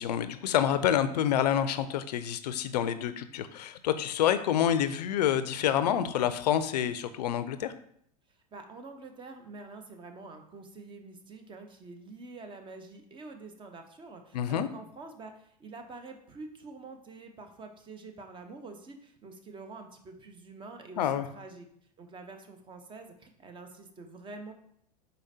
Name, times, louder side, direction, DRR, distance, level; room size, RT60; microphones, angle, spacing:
voice 1, 0.0-7.7 14.3-14.7 21.0-21.3, left 10 dB, 80° left, 12 dB, 0.4 m, -28 dB
voice 2, 8.5-21.7 22.0-24.5, right 3 dB, 25° right, 6 dB, 0.6 m, -46 dB
4.9 x 4.1 x 2.7 m, 0.67 s
hypercardioid pair, 105°, 21 cm